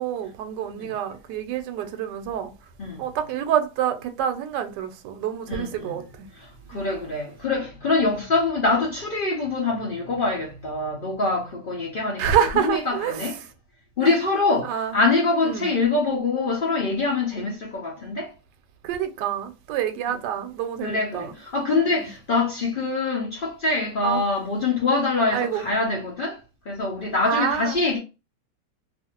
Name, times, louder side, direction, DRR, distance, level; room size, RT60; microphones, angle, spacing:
voice 1, 0.0-2.5 3.0-6.3 6.7-6.9 8.0-8.2 12.2-13.3 14.0-14.2 14.6-15.0 15.4-15.7 18.8-21.3 22.0-22.1 24.0-24.2 25.3-25.6 27.3-27.8, right 9 dB, 80° right, 1.2 m, -27 dB
voice 2, 5.5-6.0 6.4-12.2 12.6-13.3 14.0-18.3 20.1-20.2 20.8-26.4 26.7-28.0, left 3 dB, 85° left, 0.4 m, -24 dB
2.6 x 2.5 x 2.8 m
omnidirectional pair, 1.8 m